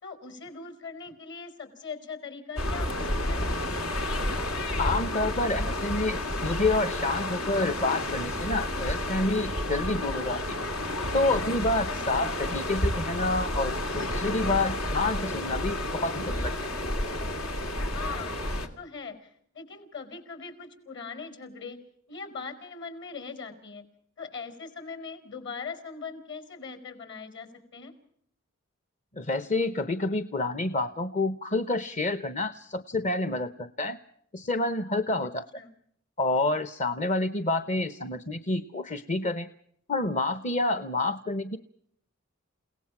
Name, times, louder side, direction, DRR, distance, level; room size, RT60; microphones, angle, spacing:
voice 1, 0.0-3.5 17.9-21.8 22.1-23.8 24.2-27.5 27.7-27.9 35.5-35.7, left 5 dB, 60° left, 10 dB, 4.6 m, -41 dB
sound 1, 2.6-18.7, left 1 dB, 85° left, 2.7 m, -30 dB
voice 2, 4.8-10.6 11.1-16.5 29.2-34.0 34.3-35.5 36.2-39.5 39.9-41.6, left 2 dB, 35° left, 11 dB, 0.8 m, -28 dB
29.5 x 18.0 x 6.0 m, 0.67 s
head